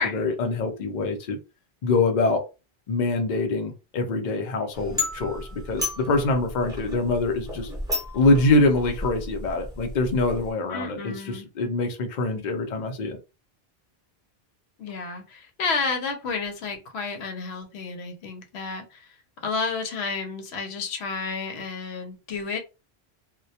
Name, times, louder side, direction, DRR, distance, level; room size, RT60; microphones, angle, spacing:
voice 1, 0.0-1.4 1.8-2.4 2.9-7.7 8.1-13.2, left 2 dB, 55° left, 0.6 m, -24 dB
sound 1, 4.7-10.5, left 2 dB, 5° right, 0.9 m, -33 dB
voice 2, 10.7-11.5 14.8-19.1 19.4-22.6, left 4 dB, 85° left, 0.9 m, -31 dB
2.2 x 2.1 x 2.7 m
omnidirectional pair, 1.1 m